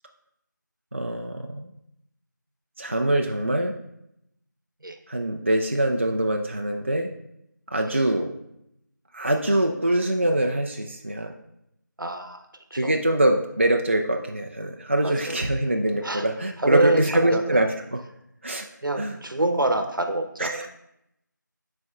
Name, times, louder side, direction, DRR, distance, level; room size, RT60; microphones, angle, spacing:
voice 1, 0.9-1.7 2.8-3.7 5.1-7.1 7.7-8.3 9.1-11.3 12.7-18.0 18.4-18.7 18.9-19.2 20.4-20.7, right 1 dB, 35° right, 3 dB, 0.3 m, -24 dB
voice 2, 12.0-12.4 12.7-12.9 15.0-15.4 16.0-16.3 16.6-17.6 18.8-20.7, right 2 dB, 85° right, 6 dB, 0.9 m, -26 dB
11.0 x 4.2 x 2.4 m, 0.81 s
figure-of-eight pair, 170°, 11 cm